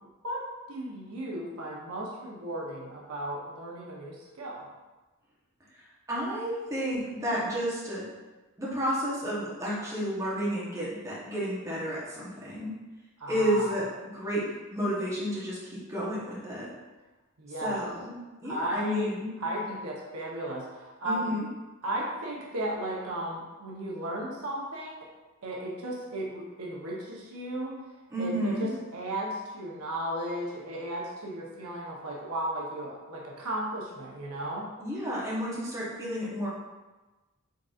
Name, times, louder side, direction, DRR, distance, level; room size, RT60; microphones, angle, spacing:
voice 1, 0.2-4.7 13.2-13.7 17.4-17.8 18.5-19.1 19.4-21.3 21.8-25.1 25.4-27.8 28.2-34.7, right 1 dB, 80° right, -3 dB, 0.8 m, -35 dB
voice 2, 5.7-8.0 8.6-12.7 13.3-13.9 14.1-14.5 14.7-16.7 17.6-19.3 21.0-21.5 28.1-28.7 34.8-36.5, equal, 15° right, -7 dB, 0.9 m, -31 dB
3.8 x 3.8 x 2.4 m, 1.2 s
head